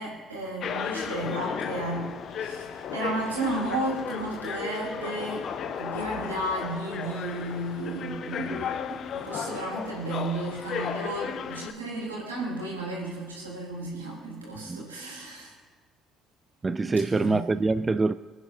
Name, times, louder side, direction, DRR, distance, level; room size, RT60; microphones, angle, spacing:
voice 1, 0.0-15.5 16.8-17.5, right 2 dB, 90° right, 3.3 m, -33 dB
sound 1, 0.6-11.7, left 7 dB, 55° left, 0.6 m, -34 dB
voice 2, 16.6-18.1, right 3 dB, 30° right, 0.4 m, -25 dB
25.0 x 9.3 x 2.8 m
figure-of-eight pair, 45°, 0 cm